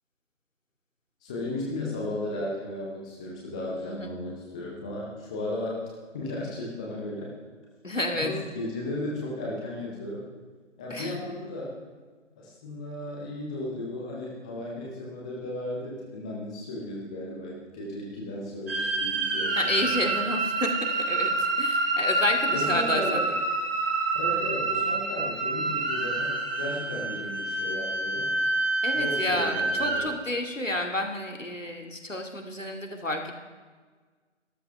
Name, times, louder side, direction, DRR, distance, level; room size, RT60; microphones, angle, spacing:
voice 1, 1.2-5.8 6.1-7.3 8.1-10.2 10.8-11.7 12.4-20.1 22.5-23.3 24.1-28.3 28.9-30.1, left 1 dB, 5° left, -3 dB, 0.6 m, -35 dB
voice 2, 3.8-4.1 7.8-8.3 10.9-11.2 19.6-23.4 28.8-33.3, left 1 dB, 90° left, 2 dB, 2.6 m, -30 dB
sound 1, 18.7-30.0, right 3 dB, 50° right, 2.7 m, -27 dB
23.5 x 13.0 x 3.5 m, 1.4 s
figure-of-eight pair, 145°, 37 cm